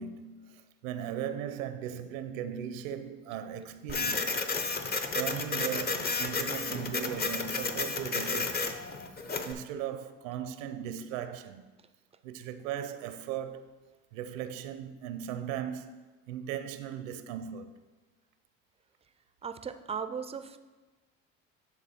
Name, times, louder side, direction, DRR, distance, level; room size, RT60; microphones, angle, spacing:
voice 1, 0.0-4.4 5.1-8.8 9.4-11.7 12.2-13.8 14.1-17.7, right 9 dB, 85° right, 0.6 m, -38 dB
Printer, 3.9-9.5, left 3 dB, 25° left, 0.6 m, -32 dB
voice 2, 19.4-20.6, right 6 dB, 15° right, 0.3 m, -37 dB
10.0 x 3.5 x 4.3 m
supercardioid pair, 80°, 38 cm